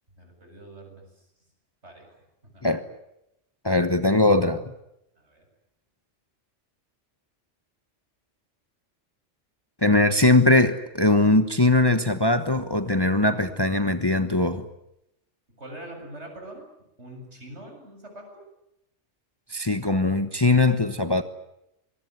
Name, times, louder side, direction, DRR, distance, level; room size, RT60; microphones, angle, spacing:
voice 1, 0.1-1.2 1.8-2.1 2.5-2.6 5.2-5.5 15.6-16.7 17.0-18.4, right 1 dB, 65° right, 7.9 m, -43 dB
voice 2, 3.6-4.6 9.8-14.7 19.5-21.2, left 2 dB, 20° left, 1.1 m, -21 dB
25.5 x 22.0 x 9.5 m
omnidirectional pair, 1.2 m